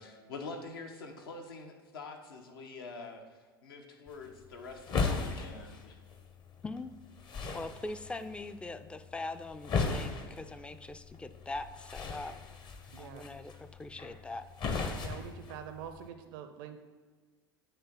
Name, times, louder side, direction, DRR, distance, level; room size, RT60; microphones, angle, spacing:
voice 1, 0.0-3.2 3.6-6.0, left 3 dB, 75° left, 4 dB, 0.9 m, -45 dB
sound 1, 4.1-16.1, left 4 dB, 40° left, 0.8 m, -38 dB
voice 2, 7.5-12.3 13.0-14.5, left 2 dB, 10° left, 11 dB, 0.3 m, -42 dB
voice 3, 12.9-13.2 15.0-16.8, right 9 dB, 60° right, 8 dB, 0.5 m, -45 dB
8.0 x 3.3 x 5.7 m, 1.5 s
figure-of-eight pair, 75°, 12 cm